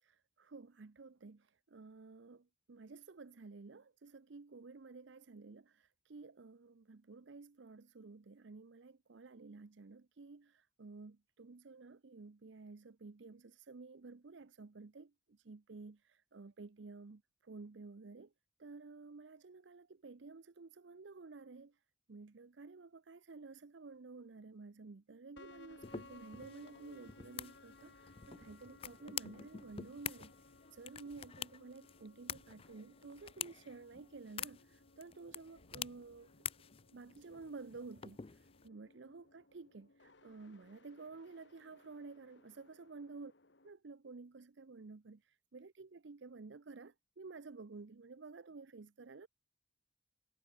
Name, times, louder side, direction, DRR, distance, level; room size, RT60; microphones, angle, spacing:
voice 1, 0.0-18.3 18.6-21.8 22.1-36.3 36.9-43.3 43.6-45.2 45.5-49.3, right 3 dB, 65° right, 0.6 m, -52 dB
sound 1, 25.4-43.7, left 2 dB, 65° left, 1.8 m, -62 dB
sound 2, 25.8-38.7, left 8 dB, 30° left, 0.4 m, -48 dB
head